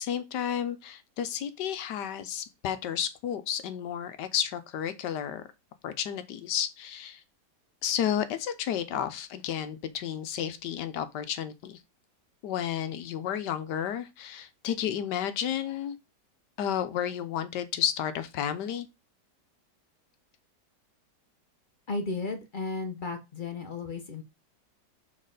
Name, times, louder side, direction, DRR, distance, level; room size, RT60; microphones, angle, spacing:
voice 1, 0.0-5.5 5.8-7.2 7.8-11.8 12.4-16.0 16.6-18.9, left 9 dB, 80° left, 1.3 m, -32 dB
voice 2, 21.9-24.2, left 3 dB, 40° left, 0.7 m, -34 dB
6.4 x 4.1 x 3.8 m
omnidirectional pair, 1.9 m